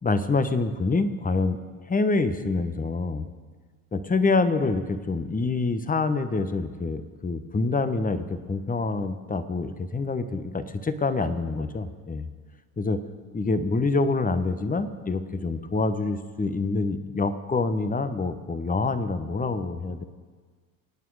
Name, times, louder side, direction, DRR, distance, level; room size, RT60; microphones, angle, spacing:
voice 1, 0.0-1.6 1.9-3.3 3.9-12.3 12.8-13.0 13.3-20.0, left 3 dB, 20° left, 11 dB, 1.2 m, -26 dB
25.0 x 9.2 x 4.9 m, 1.5 s
hypercardioid pair, 70°, 41 cm